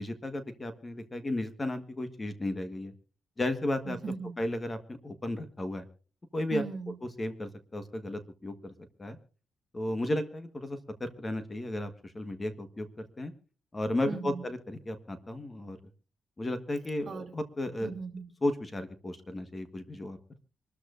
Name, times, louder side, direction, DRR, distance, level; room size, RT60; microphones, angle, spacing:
voice 1, 0.0-2.9 3.4-4.0 4.4-5.8 6.3-6.6 7.2-8.7 9.0-9.2 9.7-12.9 13.2-13.3 13.7-15.8 16.4-17.9 18.4-20.2, left 1 dB, 20° left, 9 dB, 1.4 m, -34 dB
voice 2, 3.9-4.3 6.5-6.9 14.1-14.4 17.1-17.3 17.8-18.3, right 4 dB, 45° right, 2 dB, 2.8 m, -37 dB
26.0 x 13.5 x 2.6 m, 0.39 s
cardioid pair, 135°, 0 cm